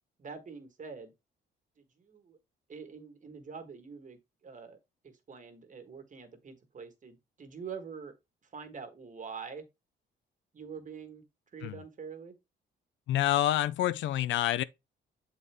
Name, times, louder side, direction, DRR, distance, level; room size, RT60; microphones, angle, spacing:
voice 1, 0.2-1.1 2.0-2.4 2.7-4.8 5.0-8.1 8.5-9.7 10.5-11.2 11.5-12.3, right 6 dB, 40° right, 1.4 m, -45 dB
voice 2, 13.1-14.6, left 13 dB, 75° left, 0.4 m, -27 dB
7.1 x 3.9 x 3.4 m
cardioid pair, 90°, 20 cm